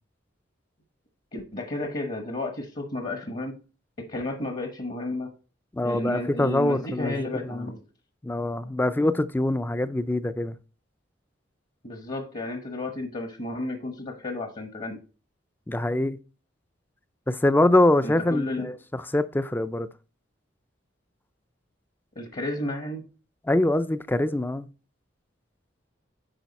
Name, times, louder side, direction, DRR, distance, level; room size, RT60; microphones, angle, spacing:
voice 1, 1.3-3.6 4.0-5.3 5.8-7.8 11.8-15.0 18.0-18.7 22.2-23.0, left 2 dB, 45° left, 1.1 m, -32 dB
voice 2, 5.7-7.7 8.2-10.5 15.7-16.2 17.3-19.9 23.5-24.7, left 1 dB, 10° left, 0.4 m, -24 dB
8.9 x 5.0 x 4.1 m
head